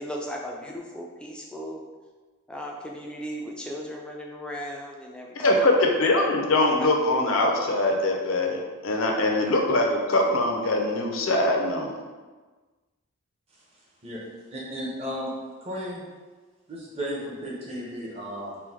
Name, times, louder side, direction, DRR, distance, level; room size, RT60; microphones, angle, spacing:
voice 1, 0.0-1.8 2.5-5.6 6.2-6.9 10.2-10.3, equal, 5° left, -1 dB, 0.3 m, -37 dB
voice 2, 5.4-12.0, left 2 dB, 65° left, 1 dB, 0.5 m, -23 dB
voice 3, 14.5-15.3 15.6-16.0 16.7-18.6, equal, 30° right, -4 dB, 0.8 m, -34 dB
4.4 x 2.2 x 3.5 m, 1.3 s
head